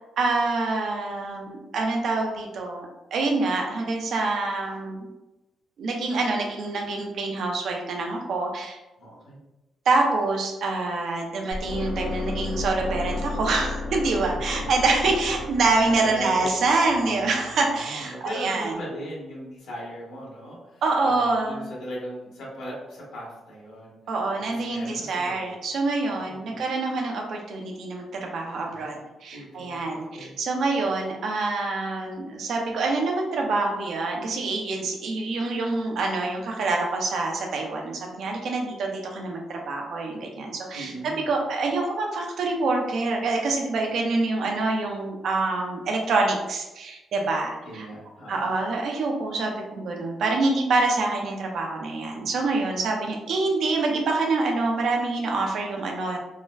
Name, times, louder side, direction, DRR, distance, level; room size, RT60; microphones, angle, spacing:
voice 1, 0.0-5.1 5.8-8.8 9.9-18.8 20.8-21.6 24.1-47.9 48.3-56.2, right 3 dB, 65° right, 1 dB, 0.5 m, -26 dB
voice 2, 9.0-9.4 14.5-14.7 15.0-15.3 15.7-16.5 16.8-24.0 24.3-25.5 26.2-26.6 28.7-29.0 29.3-30.3 40.7-41.2 47.6-48.5, equal, 90° left, -5 dB, 1.2 m, -39 dB
sound 1, 11.5-17.6, left 2 dB, 75° left, 0.7 m, -33 dB
3.7 x 2.0 x 2.3 m, 1.0 s
cardioid pair, 155°, 0 cm